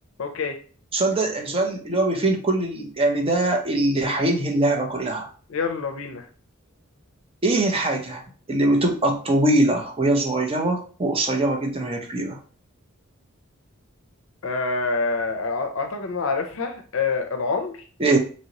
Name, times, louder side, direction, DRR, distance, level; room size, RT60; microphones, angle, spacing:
voice 1, 0.2-0.6 5.5-6.2 14.4-17.8, left 4 dB, 70° left, 5 dB, 0.5 m, -26 dB
voice 2, 0.9-5.3 7.4-8.2 8.5-12.4 18.0-18.2, right 2 dB, 25° right, 2 dB, 0.6 m, -22 dB
3.0 x 2.8 x 2.8 m, 0.40 s
head